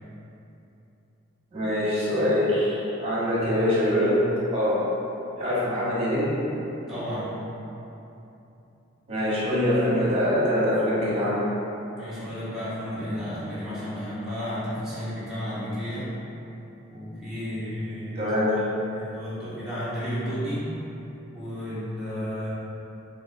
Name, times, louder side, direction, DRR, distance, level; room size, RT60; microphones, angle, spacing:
voice 1, 1.5-4.2 4.5-4.8 5.4-6.6 9.1-11.5 18.2-18.6, left 1 dB, 30° right, -9 dB, 0.9 m, -24 dB
voice 2, 6.9-7.4 12.0-16.1 16.9-18.3 18.9-20.8 21.3-22.5, equal, 5° right, -12 dB, 0.6 m, -32 dB
3.2 x 2.6 x 2.5 m, 2.9 s
head